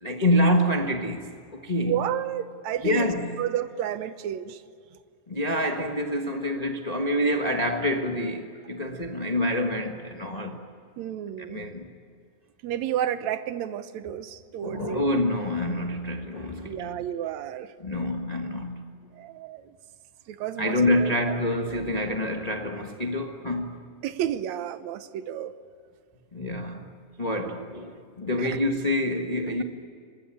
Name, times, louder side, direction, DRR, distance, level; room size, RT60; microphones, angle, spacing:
voice 1, 0.0-2.0 2.8-3.4 5.3-10.6 11.4-11.9 14.6-17.0 17.8-18.8 20.6-23.8 26.3-26.9 27.2-29.6, left 1 dB, 55° left, 0.4 m, -27 dB
voice 2, 1.9-3.1 3.4-4.6 11.0-11.6 12.6-15.0 16.6-17.7 19.1-19.7 20.3-21.4 21.7-21.8 24.0-25.5 28.4-28.6, right 10 dB, 70° right, 2.0 m, -31 dB
24.5 x 20.5 x 8.9 m
omnidirectional pair, 3.5 m